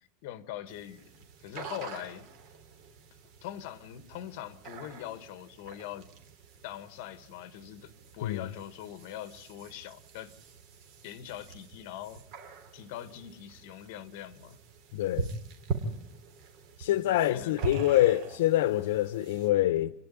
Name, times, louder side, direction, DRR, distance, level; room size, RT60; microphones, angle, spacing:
voice 1, 0.0-2.3 3.4-6.1 6.6-10.3 11.0-12.2 12.7-14.6 17.1-17.7, left 12 dB, 55° left, 1.6 m, -42 dB
sound 1, 0.7-19.5, right 4 dB, 45° right, 3.4 m, -43 dB
voice 2, 14.9-15.3 16.8-19.9, left 14 dB, 90° left, 0.7 m, -26 dB
27.5 x 11.0 x 9.9 m
supercardioid pair, 170°, 0 cm